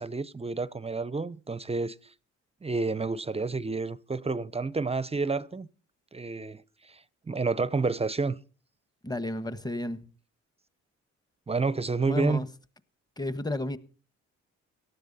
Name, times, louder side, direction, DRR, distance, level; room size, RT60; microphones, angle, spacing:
voice 1, 0.0-2.0 2.6-5.7 6.1-7.0 7.3-8.4 11.5-12.4, right 4 dB, 20° right, 0.6 m, -29 dB
voice 2, 9.0-10.0 12.0-12.5 13.2-13.8, left 1 dB, 15° left, 1.3 m, -32 dB
18.0 x 13.5 x 4.1 m
cardioid pair, 90°, 30 cm